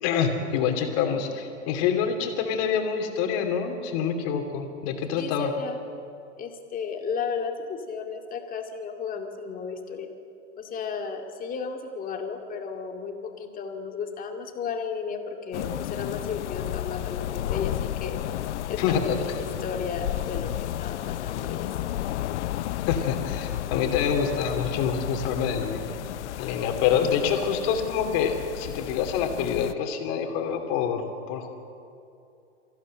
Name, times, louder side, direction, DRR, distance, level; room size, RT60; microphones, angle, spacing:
voice 1, 0.0-5.5 18.8-19.3 22.9-25.8 26.4-31.5, left 7 dB, 45° left, 4 dB, 3.0 m, -26 dB
voice 2, 5.2-5.8 6.4-10.1 10.6-18.2 18.7-21.7, left 5 dB, 25° left, 3 dB, 2.3 m, -34 dB
sound 1, 15.5-29.7, left 13 dB, 70° left, 0.7 m, -32 dB
23.5 x 15.0 x 7.7 m, 2.6 s
hypercardioid pair, 125°, 36 cm